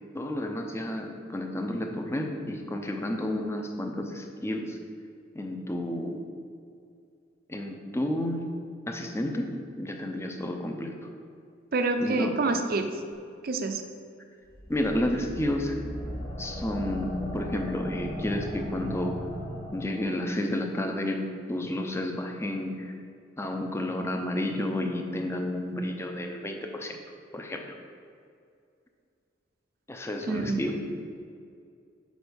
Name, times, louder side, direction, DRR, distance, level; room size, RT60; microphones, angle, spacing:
voice 1, 0.1-4.8 5.3-6.2 7.5-8.4 8.9-9.5 9.8-10.9 12.0-12.3 14.7-15.8 16.4-19.1 19.7-22.9 23.4-27.0 27.3-27.7 29.9-30.7, left 1 dB, 15° left, 3 dB, 0.6 m, -31 dB
voice 2, 11.7-12.9 13.4-13.8 30.2-30.9, right 3 dB, 50° right, 6 dB, 0.6 m, -27 dB
sound 1, 14.5-20.2, equal, 30° left, 1.6 m, -37 dB
6.3 x 5.3 x 5.2 m, 2.4 s
head